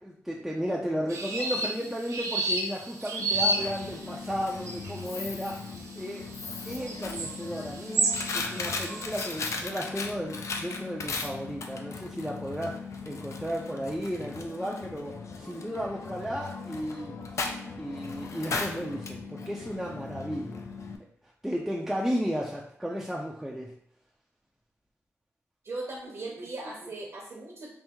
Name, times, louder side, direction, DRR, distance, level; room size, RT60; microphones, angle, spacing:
voice 1, 0.0-5.6 6.0-6.2 6.6-12.7 13.0-17.5 17.8-20.6 21.4-23.7, equal, 5° right, -3 dB, 0.4 m, -34 dB
sound 1, 1.1-9.5, right 2 dB, 85° right, 0.5 m, -32 dB
voice 2, 1.4-1.9 25.6-27.7, right 2 dB, 60° right, -2 dB, 0.8 m, -39 dB
Coin (dropping), 3.2-21.0, left 4 dB, 70° left, 0.4 m, -37 dB
3.4 x 2.6 x 2.9 m, 0.65 s
wide cardioid pair, 115°, 5 cm